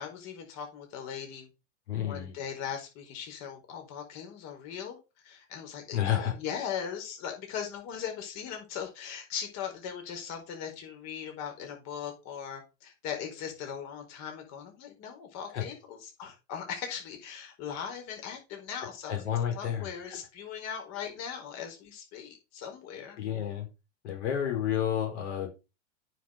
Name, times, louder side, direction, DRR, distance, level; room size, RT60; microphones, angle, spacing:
voice 1, 0.0-1.5 2.0-5.0 5.2-19.2 19.5-23.2, left 8 dB, 50° left, 4.7 m, -39 dB
voice 2, 1.9-2.3 5.9-6.3 15.5-15.6 19.1-20.2 23.2-23.7 24.0-25.5, left 10 dB, 75° left, 4.5 m, -30 dB
9.2 x 6.8 x 5.2 m
hypercardioid pair, 110°, 36 cm